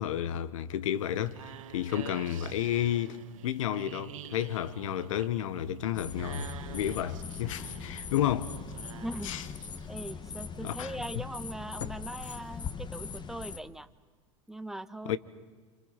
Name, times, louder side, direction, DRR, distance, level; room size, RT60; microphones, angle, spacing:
voice 1, 0.0-8.5 9.2-9.4 10.6-11.2 15.0-15.2, left 11 dB, 80° left, 1.1 m, -32 dB
Time goes slow when you're feeling bored.., 0.8-9.9, right 11 dB, 85° right, 1.1 m, -48 dB
sound 1, 5.9-13.6, left 5 dB, 25° left, 1.4 m, -41 dB
sound 2, 8.5-8.6 9.2-9.3 11.8-13.2 13.6-13.7, left 15 dB, 60° left, 0.8 m, -45 dB
voice 2, 9.0-9.3 9.9-13.9 14.5-15.2, right 1 dB, 5° right, 1.1 m, -40 dB
28.0 x 27.0 x 5.8 m
hypercardioid pair, 95°, 17 cm